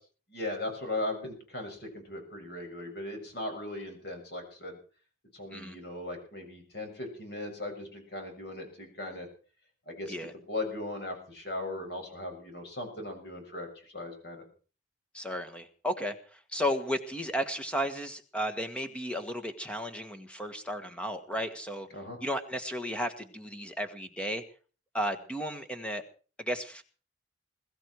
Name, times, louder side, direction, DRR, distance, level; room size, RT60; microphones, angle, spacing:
voice 1, 0.3-4.8 5.3-9.3 9.9-10.1 10.5-14.4 21.9-22.2, left 2 dB, 55° left, 3 dB, 7.0 m, -38 dB
voice 2, 15.1-21.9 22.2-24.4 24.9-26.0 26.4-26.8, equal, 5° left, 8 dB, 1.5 m, -34 dB
22.0 x 14.0 x 4.7 m, 0.39 s
head